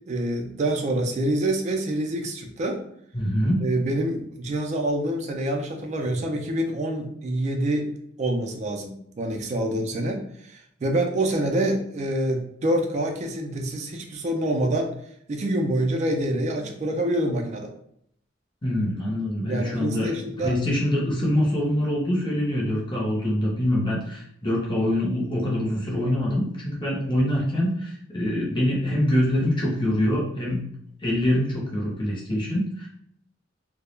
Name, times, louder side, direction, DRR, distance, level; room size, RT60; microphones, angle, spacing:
voice 1, 0.1-2.8 3.6-7.9 8.2-14.9 15.3-17.7 19.5-20.5, right 1 dB, 35° right, 3 dB, 0.3 m, -26 dB
voice 2, 3.1-3.7 18.6-30.6 31.0-32.9, left 1 dB, 25° left, -3 dB, 0.7 m, -24 dB
2.2 x 2.0 x 3.1 m, 0.71 s
head